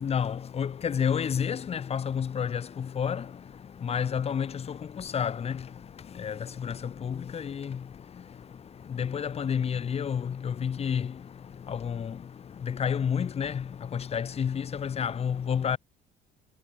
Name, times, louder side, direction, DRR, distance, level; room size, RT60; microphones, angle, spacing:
voice 1, 0.0-2.6 3.0-3.2 3.8-4.5 5.1-5.5 6.2-6.3 6.6-6.7 7.0-7.8 9.0-11.1 11.7-12.1 12.7-13.6 13.9-15.8, left 7 dB, 35° left, 1.2 m, -29 dB
cardioid pair, 110°, 17 cm